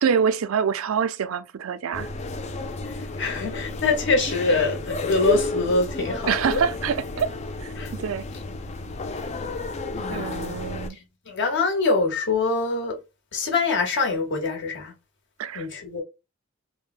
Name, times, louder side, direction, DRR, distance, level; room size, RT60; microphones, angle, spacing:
voice 1, 0.0-2.1 6.3-7.3 7.6-7.7 8.0-8.2 10.1-11.0 15.4-15.7, right 7 dB, 85° right, 0.4 m, -25 dB
sound 1, 1.9-10.9, left 2 dB, 30° left, 0.4 m, -32 dB
voice 2, 2.8-6.6 7.7-7.9 9.9-10.6 10.9-13.0 13.3-14.9 15.5-16.0, left 3 dB, 60° left, 1.1 m, -25 dB
3.4 x 2.1 x 2.3 m
head